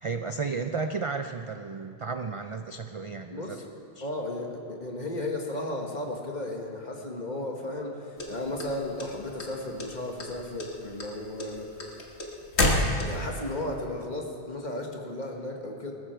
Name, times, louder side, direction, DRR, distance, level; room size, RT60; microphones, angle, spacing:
voice 1, 0.0-3.6 4.0-4.1, right 4 dB, 50° right, 7 dB, 0.4 m, -33 dB
voice 2, 3.3-3.7 4.0-11.7 13.0-15.9, left 1 dB, 40° left, 1 dB, 1.7 m, -34 dB
sound 1, 8.2-9.5 9.8-10.3 10.6-13.4, left 1 dB, 70° left, 1.9 m, -27 dB
20.0 x 13.5 x 4.5 m, 2.4 s
omnidirectional pair, 1.2 m